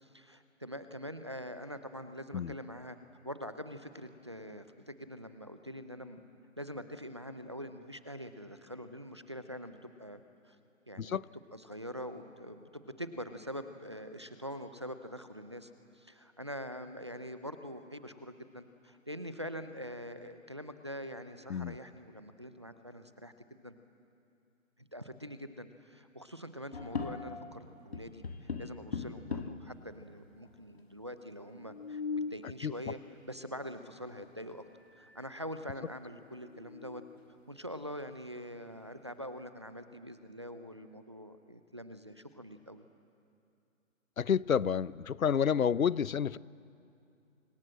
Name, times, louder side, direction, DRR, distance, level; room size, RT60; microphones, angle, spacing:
voice 1, 0.0-3.0 3.2-6.2 6.6-10.2 10.4-10.6 10.9-11.2 11.5-15.7 15.9-23.7 24.9-33.0 33.3-34.6 35.0-37.0 37.5-42.9, equal, 20° right, 10 dB, 0.7 m, -44 dB
sound 1, 26.7-27.6 27.9-29.7 30.5-30.6 30.7-30.8 31.5-32.5 34.2-34.3 34.8-35.3 35.7-35.8 36.3-37.2, left 5 dB, 50° left, 2.0 m, -40 dB
voice 2, 44.2-46.4, left 7 dB, 85° left, 20 dB, 0.8 m, -29 dB
29.0 x 26.0 x 7.6 m, 2.6 s
hypercardioid pair, 170°, 40 cm